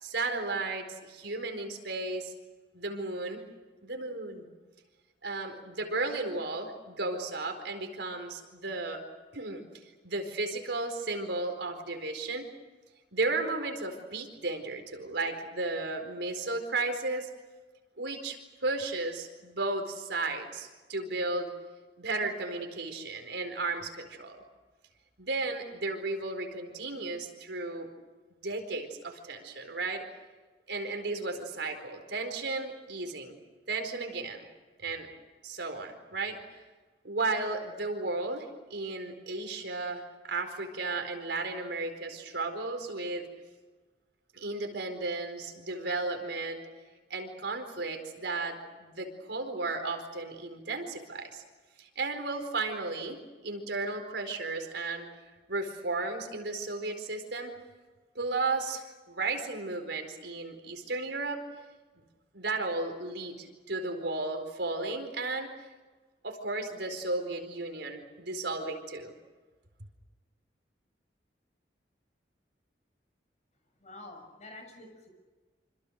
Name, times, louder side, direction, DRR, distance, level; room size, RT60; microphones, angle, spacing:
voice 1, 0.0-2.3 2.7-3.4 3.8-4.5 5.2-9.0 9.3-9.6 10.0-12.5 13.1-17.3 18.0-21.5 22.0-24.4 25.2-27.9 28.4-30.0 30.7-33.4 33.7-34.4 34.8-35.1 35.4-36.4 37.0-43.3 44.3-46.6 47.1-51.4 51.8-55.1 55.5-57.5 58.1-61.4 62.3-65.5 66.2-69.1, right 3 dB, 80° right, 5 dB, 4.5 m, -34 dB
voice 2, 73.8-75.1, left 2 dB, 40° left, 4 dB, 6.9 m, -48 dB
27.0 x 26.5 x 6.6 m, 1.3 s
head